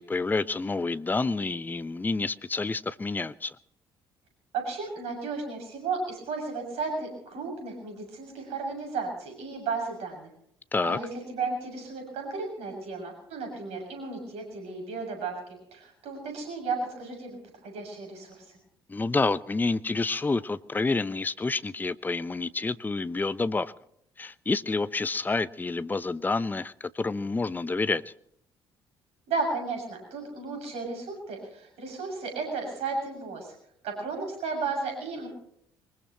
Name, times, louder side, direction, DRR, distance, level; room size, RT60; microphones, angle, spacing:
voice 1, 0.0-3.6 10.7-11.0 18.9-23.7 24.2-28.1, left 3 dB, 15° left, 17 dB, 0.6 m, -28 dB
voice 2, 4.5-10.3 10.8-15.3 15.7-17.4 17.6-18.3 29.3-33.5 33.8-35.3, right 4 dB, 60° right, 3 dB, 6.9 m, -34 dB
23.0 x 20.5 x 3.0 m, 0.72 s
figure-of-eight pair, 45°, 12 cm